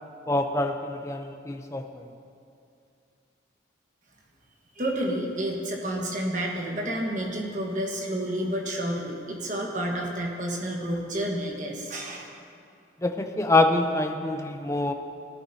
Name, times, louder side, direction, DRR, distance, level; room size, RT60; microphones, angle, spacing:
voice 1, 0.3-2.0 13.0-14.9, left 2 dB, 15° left, 5 dB, 0.5 m, -25 dB
voice 2, 4.8-12.3, right 1 dB, 40° right, -1 dB, 1.4 m, -30 dB
17.5 x 10.0 x 2.8 m, 2.5 s
head